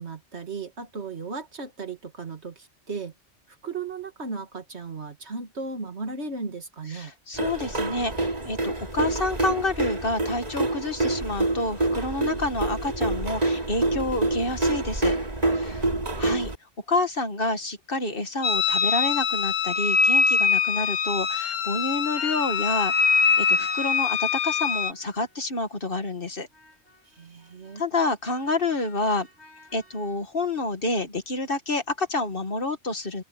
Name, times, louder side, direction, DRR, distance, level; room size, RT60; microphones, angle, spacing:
voice 1, 0.0-3.1 3.6-7.1 15.7-16.3 27.1-27.8, right 4 dB, 65° right, 2.5 m, -36 dB
voice 2, 6.9-15.2 15.5-15.8 16.2-16.5 16.9-22.9 23.4-26.5 27.8-29.3 29.7-33.2, left 2 dB, 50° left, 1.9 m, -28 dB
sound 1, 7.4-16.5, right 2 dB, 35° right, 2.9 m, -27 dB
sound 2, 18.4-24.9, left 6 dB, 85° left, 1.3 m, -23 dB
sound 3, 22.2-25.6 26.5-27.1 27.4-30.2, left 6 dB, 65° left, 8.5 m, -46 dB
open air
omnidirectional pair, 1.2 m